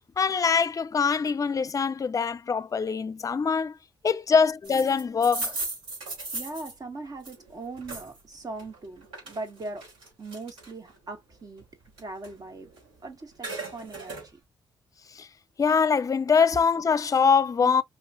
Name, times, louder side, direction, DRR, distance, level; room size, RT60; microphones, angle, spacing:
voice 1, 0.2-3.7 4.0-5.6 15.2-15.3 15.6-17.8, left 5 dB, 40° left, 0.5 m, -23 dB
sound 1, 4.6-8.2 8.6-11.0 11.4-12.9 13.2-14.3, right 3 dB, 80° right, 3.6 m, -37 dB
voice 2, 6.3-9.8 10.2-11.6 12.0-12.7 13.0-14.2, right 2 dB, 45° right, 1.9 m, -39 dB
5.2 x 3.1 x 2.5 m
hypercardioid pair, 45°, 9 cm